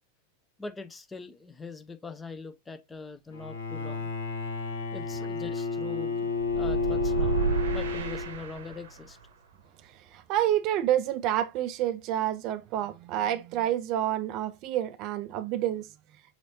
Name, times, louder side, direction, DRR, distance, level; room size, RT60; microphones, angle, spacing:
voice 1, 0.6-4.1 4.9-7.5 7.7-9.2, left 4 dB, 15° left, 0.5 m, -42 dB
Bowed string instrument, 3.3-8.6, left 5 dB, 65° left, 0.7 m, -31 dB
sound 1, 6.5-9.0, right 6 dB, 60° right, 0.7 m, -31 dB
voice 2, 10.1-15.9, right 12 dB, 40° right, 0.4 m, -28 dB
5.6 x 3.0 x 2.7 m
figure-of-eight pair, 90°, 0 cm